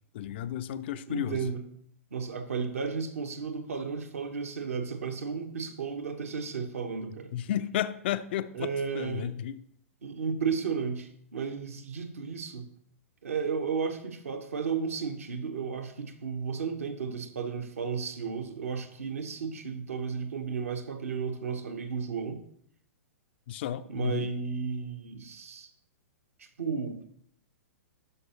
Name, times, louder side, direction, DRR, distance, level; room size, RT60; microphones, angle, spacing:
voice 1, 0.1-1.5 7.3-9.6 23.5-24.3, left 11 dB, 45° left, 0.3 m, -33 dB
voice 2, 1.1-1.7 2.1-7.3 8.5-9.3 10.0-12.7 13.2-22.4 23.9-25.7 26.4-27.0, right 5 dB, 65° right, 1.0 m, -33 dB
12.0 x 4.7 x 2.9 m
figure-of-eight pair, 110°, 8 cm